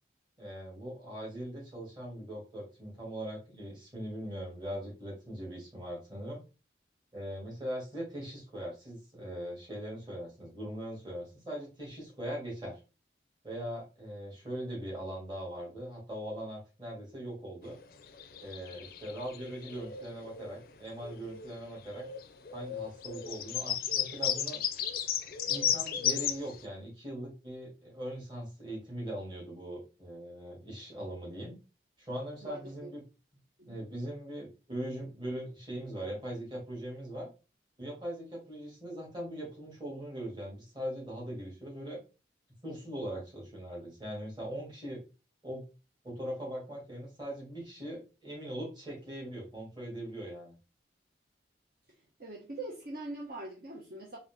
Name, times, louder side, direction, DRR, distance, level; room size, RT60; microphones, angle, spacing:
voice 1, 0.4-6.4 7.1-12.8 13.4-17.8 18.4-22.1 22.5-24.6 25.5-31.6 32.0-33.0 33.7-37.3 37.8-42.0 42.6-45.0 45.4-45.6 46.0-50.6, equal, 25° right, -3 dB, 2.0 m, -40 dB
sound 1, 17.7-20.7 21.0-21.5 21.8-26.6, left 9 dB, 50° left, 0.4 m, -34 dB
voice 2, 32.4-32.9 33.6-33.8 52.2-54.2, right 2 dB, 55° right, -2 dB, 0.9 m, -42 dB
4.0 x 2.8 x 3.3 m, 0.31 s
head